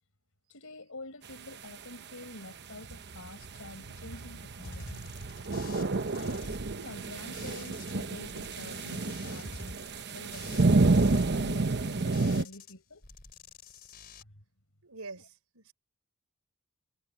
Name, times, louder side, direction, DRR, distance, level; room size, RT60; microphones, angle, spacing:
voice 1, 0.5-5.1 6.1-13.1 14.2-14.4 15.1-15.3, left 2 dB, 65° left, 5.5 m, -47 dB
sound 1, 2.7-12.4, right 3 dB, 50° right, 1.0 m, -30 dB
sound 2, 4.6-7.9 8.2-12.7 13.0-14.2, left 3 dB, 45° left, 3.9 m, -48 dB
voice 2, 14.8-15.7, right 3 dB, 80° right, 4.5 m, -45 dB
head